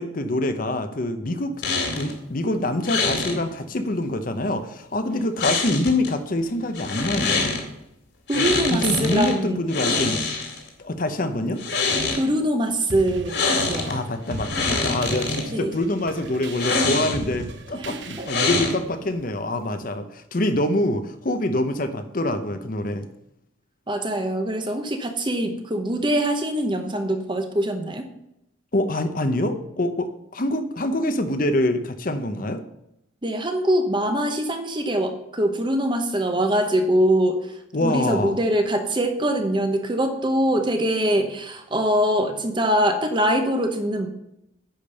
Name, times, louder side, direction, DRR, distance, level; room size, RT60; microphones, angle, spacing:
voice 1, 0.0-1.5 1.9-7.5 8.3-10.3 10.8-11.6 13.8-23.1 28.7-32.6 37.7-38.4, left 1 dB, 40° left, 9 dB, 0.7 m, -25 dB
sound 1, 1.6-2.1 2.8-3.4 5.4-6.1 6.7-7.6 8.3-9.3 9.7-10.7 11.5-12.2 13.3-13.9 14.3-15.4 16.5-17.3 18.3-19.0, left 3 dB, 60° left, 2.3 m, -24 dB
voice 2, 8.3-9.6 12.1-13.4 13.7-13.9 15.5-15.7 17.7-18.0 23.9-28.0 33.2-37.4 37.8-44.1, right 1 dB, 25° right, 6 dB, 0.9 m, -23 dB
sound 2, 12.9-18.5, right 2 dB, 60° right, 0.8 m, -37 dB
10.5 x 5.3 x 6.7 m, 0.83 s
head